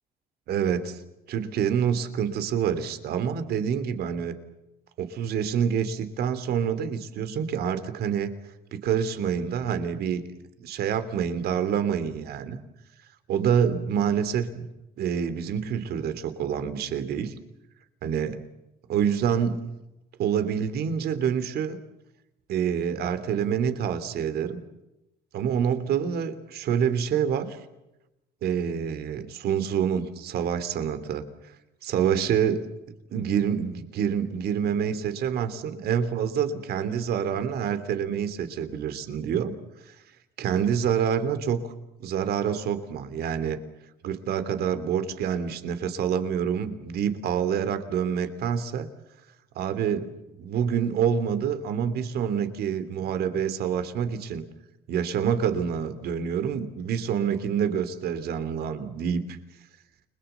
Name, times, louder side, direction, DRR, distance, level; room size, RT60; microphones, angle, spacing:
voice 1, 0.5-1.0 1.3-4.3 5.0-8.3 8.7-10.2 10.6-12.6 13.3-14.5 15.0-17.3 18.0-18.4 18.9-19.7 20.2-21.8 22.5-24.6 25.3-27.6 28.4-31.3 31.8-32.7 33.1-39.5 40.4-41.6 42.0-43.6 44.0-48.9 49.5-50.1 50.4-54.4 54.9-59.2, right 8 dB, 70° right, 11 dB, 3.2 m, -27 dB
30.0 x 22.0 x 7.0 m, 0.92 s
cardioid pair, 110°, 17 cm